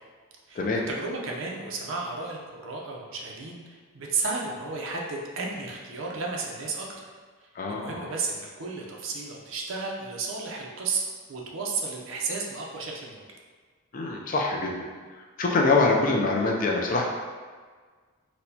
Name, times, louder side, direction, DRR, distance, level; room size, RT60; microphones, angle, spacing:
voice 1, 0.5-7.1 7.7-11.0 11.3-13.2, right 4 dB, 60° right, -1 dB, 0.5 m, -33 dB
voice 2, 7.6-8.1 13.9-14.9 15.4-17.0, left 3 dB, 35° left, 0 dB, 0.3 m, -24 dB
4.2 x 2.1 x 2.7 m, 1.5 s
head